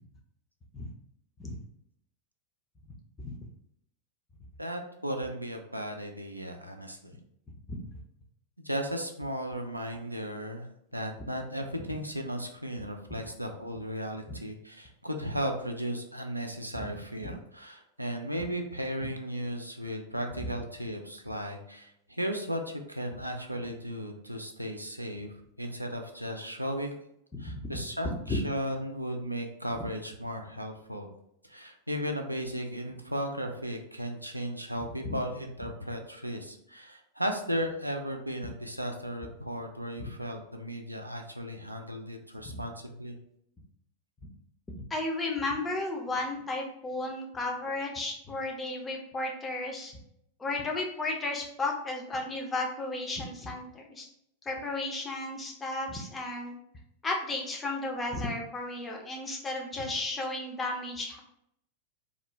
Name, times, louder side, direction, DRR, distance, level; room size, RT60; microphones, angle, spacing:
voice 1, 4.6-7.2 8.6-27.0 27.4-31.1 31.4-43.2, equal, 85° right, 4 dB, 0.3 m, -35 dB
voice 2, 28.0-28.4 35.0-35.1 40.0-40.1 42.4-42.6 44.9-50.0 50.4-54.1 54.5-56.6 57.0-61.2, left 2 dB, 15° left, 0 dB, 0.5 m, -33 dB
2.4 x 2.1 x 2.9 m, 0.75 s
figure-of-eight pair, 90°, 0 cm